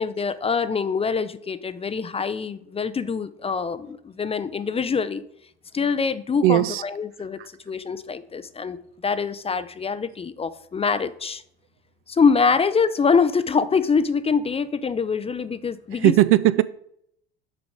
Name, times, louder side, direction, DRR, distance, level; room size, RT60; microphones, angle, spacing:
voice 1, 0.0-5.2 5.7-7.4 7.7-8.8 9.0-11.4 12.1-16.1, left 5 dB, 20° left, 13 dB, 0.5 m, -24 dB
voice 2, 6.4-6.8 7.4-7.5 15.9-16.6, right 15 dB, 45° right, 16 dB, 0.4 m, -18 dB
6.5 x 5.0 x 6.2 m, 0.70 s
hypercardioid pair, 65°, 32 cm